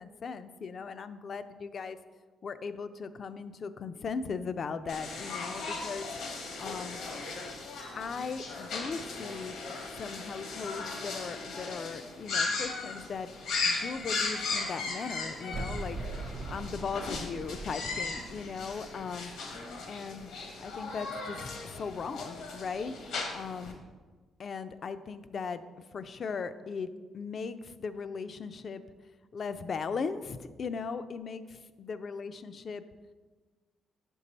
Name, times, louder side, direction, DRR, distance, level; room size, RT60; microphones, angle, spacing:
voice 1, 0.0-2.0 2.4-6.1 6.6-7.0 7.9-9.5 10.0-13.3 13.6-16.0 16.5-19.3 19.9-20.3 20.6-23.8 24.4-28.8 29.3-32.8, left 5 dB, 50° left, 11 dB, 0.4 m, -38 dB
sound 1, 4.9-23.7, left 3 dB, 80° left, 1.0 m, -37 dB
sound 2, 15.5-20.7, right 2 dB, 50° right, 0.5 m, -42 dB
5.3 x 5.1 x 4.1 m, 1.4 s
cardioid pair, 90°, 0 cm